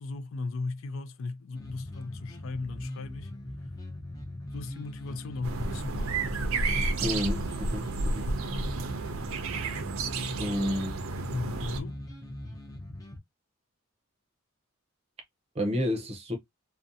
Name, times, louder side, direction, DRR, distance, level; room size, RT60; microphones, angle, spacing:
voice 1, 0.0-3.3 4.5-6.2 11.3-12.0, left 3 dB, 75° left, 0.4 m, -36 dB
sound 1, 1.5-13.2, left 1 dB, 20° left, 0.5 m, -41 dB
sound 2, 5.4-11.8, right 3 dB, 85° right, 0.4 m, -31 dB
voice 2, 7.0-8.3 10.4-11.0 15.5-16.4, left 1 dB, 30° right, 0.6 m, -30 dB
2.5 x 2.1 x 2.6 m
head